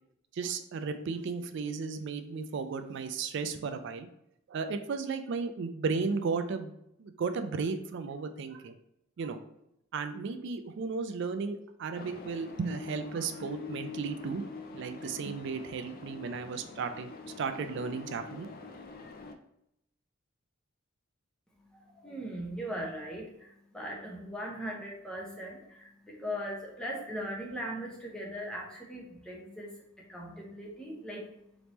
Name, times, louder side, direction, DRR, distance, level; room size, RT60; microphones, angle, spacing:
voice 1, 0.3-4.1 4.5-6.7 7.0-8.7 9.2-9.4 9.9-14.4 14.7-17.1 17.4-18.5, right 5 dB, 60° right, 8 dB, 0.3 m, -34 dB
sound 1, 11.9-19.3, left 5 dB, 45° left, 0.4 m, -45 dB
voice 2, 21.7-29.7 30.1-31.3, equal, 5° left, -2 dB, 0.8 m, -39 dB
3.5 x 3.0 x 4.0 m, 0.80 s
head